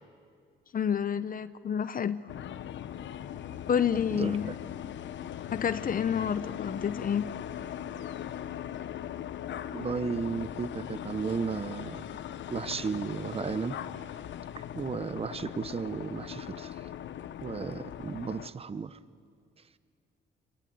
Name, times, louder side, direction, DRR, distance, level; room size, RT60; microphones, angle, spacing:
voice 1, 0.7-2.2 3.7-4.5 5.5-7.3, left 8 dB, 45° left, 0.8 m, -29 dB
sound 1, 2.3-18.5, left 10 dB, 70° left, 1.0 m, -40 dB
voice 2, 9.7-12.0 12.5-13.8 14.7-16.7 17.4-18.9, right 5 dB, 30° right, 0.9 m, -34 dB
27.0 x 22.5 x 9.6 m
cardioid pair, 90°, 20 cm